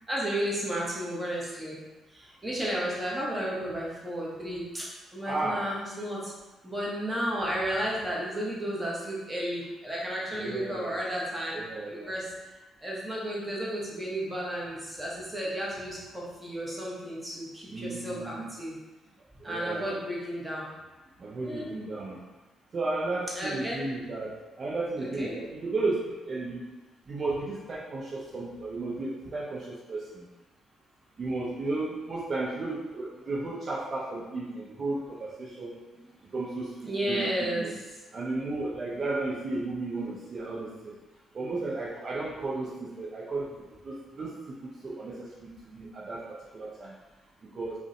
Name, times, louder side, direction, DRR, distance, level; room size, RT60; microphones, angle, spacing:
voice 1, 0.1-1.8 2.1-4.9 5.1-6.3 6.6-11.6 11.8-12.3 12.8-18.8 19.4-20.7 21.2-21.7 23.3-23.8 25.0-25.3 35.9-36.1 36.9-37.7, right 1 dB, 15° right, -5 dB, 0.9 m, -33 dB
voice 2, 5.2-5.7 10.3-11.0 11.5-12.1 17.7-18.5 19.4-20.0 21.2-22.2 22.7-26.7 27.1-30.3 31.2-35.8 36.3-37.8 38.1-41.0 41.3-47.0 47.5-47.7, right 2 dB, 50° right, -5 dB, 0.4 m, -34 dB
2.4 x 2.1 x 2.5 m, 1.1 s
supercardioid pair, 55°, 0 cm